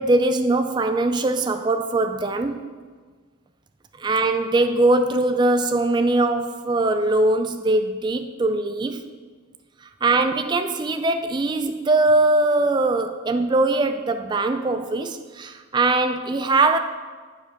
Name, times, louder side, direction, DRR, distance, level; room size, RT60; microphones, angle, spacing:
voice 1, 0.0-2.6 4.0-9.0 10.0-16.8, right 2 dB, 20° right, 8 dB, 0.3 m, -21 dB
8.5 x 5.0 x 5.4 m, 1.5 s
head